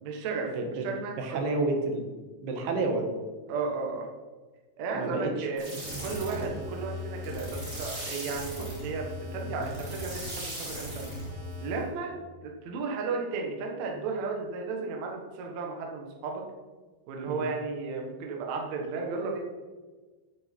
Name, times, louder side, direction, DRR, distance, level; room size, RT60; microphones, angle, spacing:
voice 1, 0.0-1.4 3.5-4.1 4.8-5.6 6.0-11.0 11.6-12.2 12.4-16.4 17.1-19.4, right 4 dB, 90° right, 1 dB, 1.5 m, -34 dB
voice 2, 0.5-0.9 1.2-2.1 2.4-3.1 4.9-6.1 6.3-6.5 9.5-9.6 17.3-17.4, right 3 dB, 65° right, 3 dB, 3.0 m, -31 dB
sound 1, 5.6-11.9, left 1 dB, 25° right, 2.9 m, -38 dB
9.7 x 9.2 x 4.5 m, 1.3 s
omnidirectional pair, 5.6 m